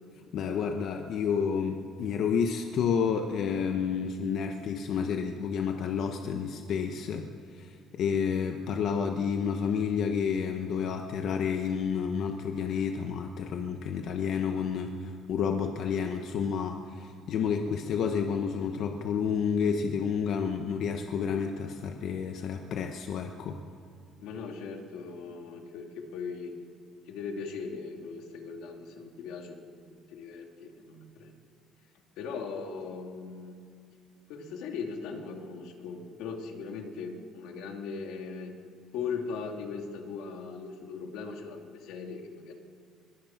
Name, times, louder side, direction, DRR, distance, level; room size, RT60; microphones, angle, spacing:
voice 1, 0.3-23.6, left 6 dB, 55° left, 5 dB, 1.2 m, -30 dB
voice 2, 24.2-26.5 27.1-31.4 32.2-33.6 34.3-38.6 38.9-42.5, left 5 dB, 80° left, 3 dB, 2.6 m, -39 dB
22.5 x 22.0 x 6.0 m, 2.2 s
cardioid pair, 155°, 0 cm